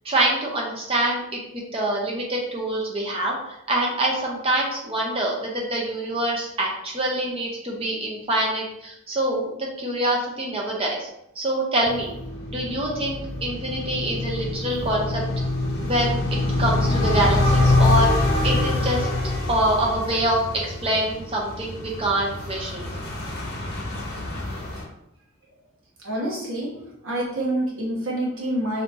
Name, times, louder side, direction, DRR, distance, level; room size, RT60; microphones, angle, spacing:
voice 1, 0.0-11.1 11.3-12.1 12.5-15.2 15.8-19.1 19.5-22.9, right 1 dB, 25° right, -2 dB, 0.7 m, -25 dB
sound 1, 11.8-24.8, left 2 dB, 45° left, 0.7 m, -25 dB
voice 2, 26.0-28.8, right 1 dB, 70° right, -3 dB, 1.1 m, -27 dB
3.3 x 2.7 x 2.8 m, 0.80 s
head